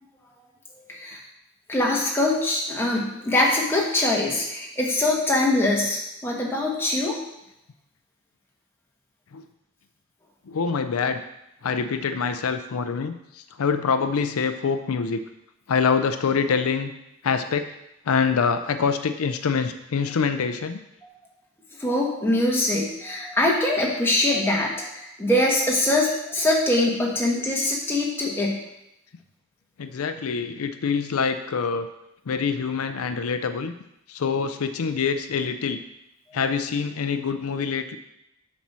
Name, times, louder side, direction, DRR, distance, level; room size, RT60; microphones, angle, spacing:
voice 1, 0.9-1.2 1.7-7.2 21.8-28.6, left 1 dB, 10° left, -3 dB, 1.3 m, -23 dB
voice 2, 10.5-11.2 11.6-15.2 15.7-16.9 17.2-17.6 18.1-20.8 29.8-31.9 32.3-33.7 34.1-35.8 36.3-38.0, left 5 dB, 85° left, 9 dB, 0.5 m, -25 dB
7.3 x 4.3 x 6.0 m, 0.86 s
head